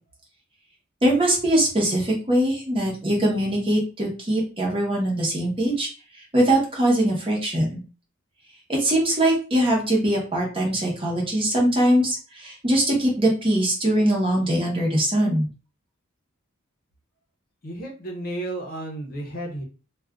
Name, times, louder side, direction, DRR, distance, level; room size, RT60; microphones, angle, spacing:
voice 1, 1.0-5.9 6.1-7.8 8.7-15.5, right 1 dB, 25° right, -2 dB, 0.9 m, -22 dB
voice 2, 17.6-19.6, right 1 dB, 45° left, 1 dB, 0.7 m, -32 dB
2.4 x 2.3 x 3.5 m, 0.35 s
head